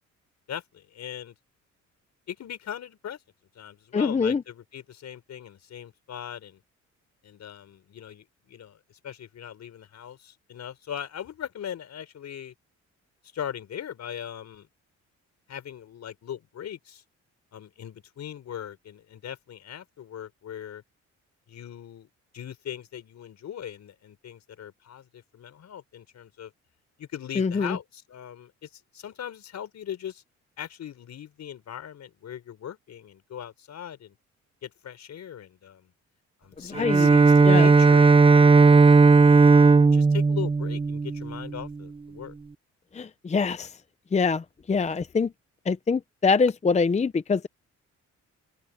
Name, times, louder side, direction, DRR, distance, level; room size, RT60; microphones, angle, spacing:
voice 1, 0.5-1.3 2.3-3.2 3.5-6.6 7.2-12.5 13.3-14.7 15.5-17.0 17.5-20.8 21.5-22.1 22.3-26.5 27.0-30.2 30.6-34.1 34.6-35.9 36.4-39.0 39.5-42.3, left 9 dB, 65° left, 4.8 m, -40 dB
voice 2, 3.9-4.4 27.4-27.8 36.6-37.1 37.4-37.7 42.9-43.7 44.1-45.3 45.7-47.5, left 5 dB, 25° left, 0.7 m, -24 dB
Bowed string instrument, 36.8-41.7, right 4 dB, 20° right, 0.7 m, -16 dB
open air
cardioid pair, 90°, 30 cm